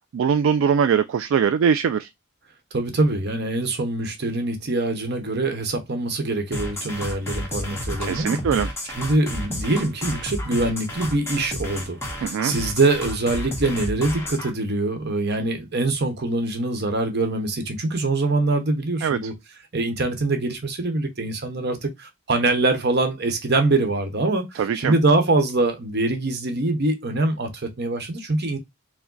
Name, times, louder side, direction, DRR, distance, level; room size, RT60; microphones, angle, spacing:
voice 1, 0.1-2.1 8.0-8.7 12.2-12.5 19.0-19.2 24.6-24.9, right 7 dB, 70° right, 0.3 m, -21 dB
voice 2, 2.7-8.6 8.9-19.3 19.7-28.6, right 2 dB, 55° right, 1.0 m, -24 dB
sound 1, 6.5-14.5, left 1 dB, 10° left, 1.1 m, -31 dB
4.8 x 2.1 x 3.8 m
head